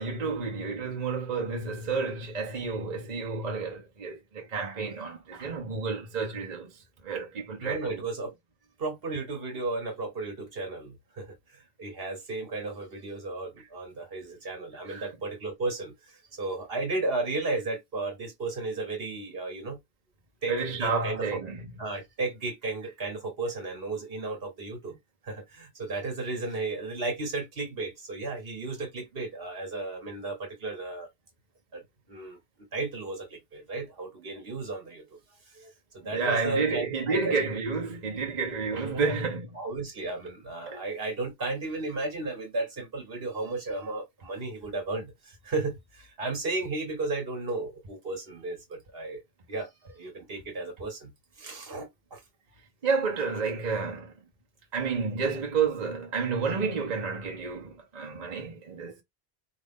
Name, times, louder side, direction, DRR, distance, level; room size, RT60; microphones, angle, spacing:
voice 1, 0.0-6.7 7.0-8.0 14.9-15.1 20.5-21.6 36.1-39.5 40.7-40.8 52.8-54.1 54.7-59.0, right 4 dB, 45° right, 1.0 m, -30 dB
voice 2, 7.6-8.3 8.8-19.8 20.4-20.5 20.8-21.4 21.8-25.0 25.2-31.1 31.7-31.8 32.1-32.4 32.7-35.2 35.5-37.3 38.7-39.2 39.5-49.2 49.5-51.1 51.4-52.2, right 3 dB, 65° right, 1.5 m, -34 dB
4.8 x 2.5 x 3.6 m
omnidirectional pair, 1.1 m